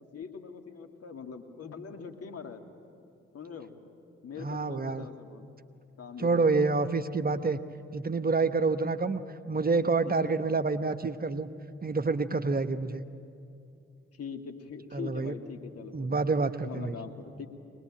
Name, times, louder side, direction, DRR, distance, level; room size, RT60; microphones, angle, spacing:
voice 1, 0.1-2.6 3.3-3.7 4.2-5.5 6.0-6.7 10.0-10.3 14.1-16.2 16.6-17.5, left 6 dB, 50° left, 4 dB, 2.3 m, -42 dB
voice 2, 4.4-5.0 6.2-7.6 7.9-9.2 9.5-11.5 11.8-13.0 14.9-15.4 15.9-17.0, right 4 dB, 30° right, 10 dB, 1.1 m, -28 dB
23.5 x 20.0 x 9.0 m, 2.5 s
hypercardioid pair, 40°, 31 cm